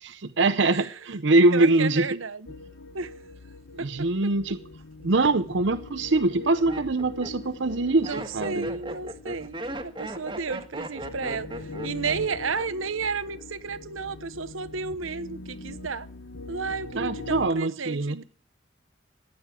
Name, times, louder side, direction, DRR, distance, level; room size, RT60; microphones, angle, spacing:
voice 1, 0.2-2.1 3.7-4.6 5.0-8.7 16.9-18.2, right 2 dB, 65° right, 0.8 m, -23 dB
voice 2, 1.5-2.5 2.9-3.1 3.8-4.1 8.0-16.1 16.5-18.2, right 4 dB, 90° right, 1.1 m, -32 dB
sound 1, 2.5-17.5, left 3 dB, 75° left, 1.0 m, -42 dB
Laughter, 5.6-5.7 6.3-12.9 13.2-13.7, right 1 dB, 25° right, 1.6 m, -37 dB
15.0 x 9.6 x 8.3 m
head